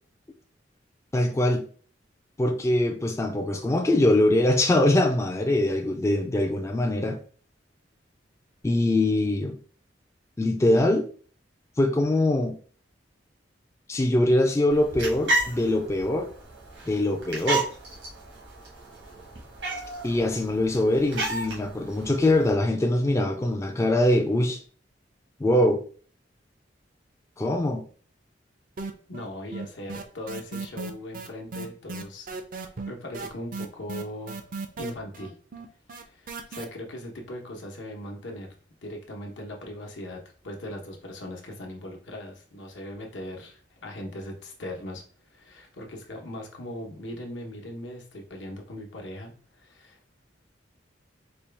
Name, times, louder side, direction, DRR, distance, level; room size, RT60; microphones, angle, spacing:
voice 1, 1.1-1.7 2.4-7.2 8.6-9.6 10.4-11.1 11.8-12.6 13.9-16.3 16.9-17.7 20.0-24.6 25.4-25.8 27.4-27.8, left 1 dB, 15° left, 3 dB, 0.3 m, -23 dB
sound 1, 14.7-22.5, right 2 dB, 90° right, 1.5 m, -33 dB
sound 2, 28.8-29.3 29.5-36.6, right 3 dB, 50° right, 0.5 m, -36 dB
voice 2, 29.1-32.4 32.9-34.4 34.8-35.3 35.9-38.5 38.8-50.0, left 1 dB, 80° left, 1 dB, 0.9 m, -39 dB
4.4 x 2.3 x 3.3 m, 0.43 s
head